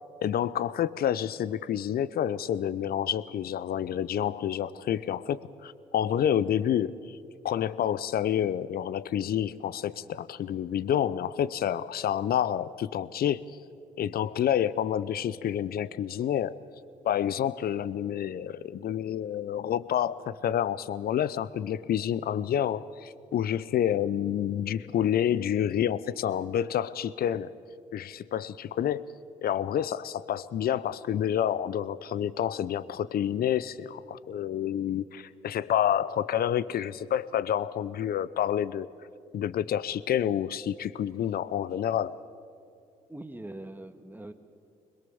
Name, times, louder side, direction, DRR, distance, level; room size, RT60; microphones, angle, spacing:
voice 1, 0.2-7.2 7.4-13.5 14.0-16.6 17.0-27.6 27.9-29.1 29.4-38.9 39.3-42.2, left 10 dB, 60° left, 18 dB, 0.7 m, -28 dB
voice 2, 43.1-44.3, right 1 dB, 10° right, 8 dB, 1.7 m, -42 dB
21.5 x 21.5 x 7.0 m, 2.4 s
hypercardioid pair, 45°, 18 cm